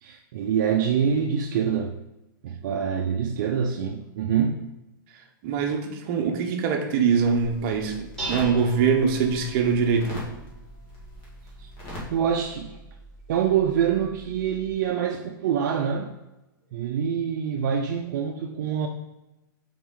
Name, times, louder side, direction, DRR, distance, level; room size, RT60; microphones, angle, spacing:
voice 1, 0.0-2.0 2.4-4.7 11.6-11.7 12.1-12.8 13.3-16.1 16.7-18.9, right 8 dB, 55° right, 3 dB, 0.5 m, -25 dB
voice 2, 5.4-10.2, right 6 dB, 35° right, 2 dB, 0.9 m, -23 dB
sound 1, 7.2-12.1, left 1 dB, 30° left, 1.8 m, -42 dB
Dishes pots and pans, 7.7-14.7, right 2 dB, 5° left, 1.9 m, -42 dB
5.9 x 4.4 x 3.8 m, 1.0 s
hypercardioid pair, 160°, 12 cm